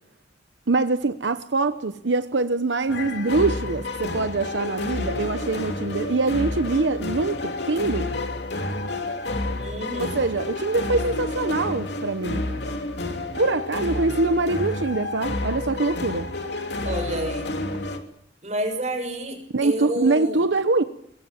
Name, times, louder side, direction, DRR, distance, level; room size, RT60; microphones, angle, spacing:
voice 1, 0.7-8.1 10.0-12.4 13.4-16.3 19.5-20.8, right 3 dB, 90° right, 10 dB, 0.9 m, -24 dB
sound 1, 2.9-18.0, left 2 dB, 70° left, 3.0 m, -30 dB
voice 2, 9.6-10.2 16.8-17.5 18.4-20.4, right 1 dB, 40° right, 5 dB, 6.5 m, -29 dB
22.5 x 22.0 x 7.2 m, 0.74 s
head